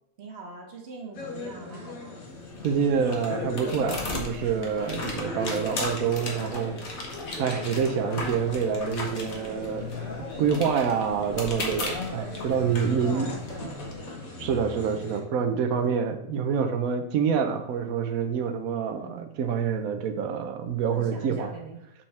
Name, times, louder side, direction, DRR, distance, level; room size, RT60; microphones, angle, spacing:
voice 1, 0.2-2.2 9.3-9.7 12.4-14.2 18.9-19.3 20.9-21.8, right 4 dB, 45° right, 0 dB, 1.5 m, -43 dB
sound 1, 1.1-15.2, left 3 dB, 70° left, 1.9 m, -37 dB
sound 2, 2.2-13.9, left 2 dB, 50° left, 1.5 m, -38 dB
voice 2, 2.6-6.8 7.4-13.3 14.4-21.5, right 7 dB, 75° right, 7 dB, 1.2 m, -27 dB
7.1 x 5.4 x 3.4 m, 0.85 s
omnidirectional pair, 1.5 m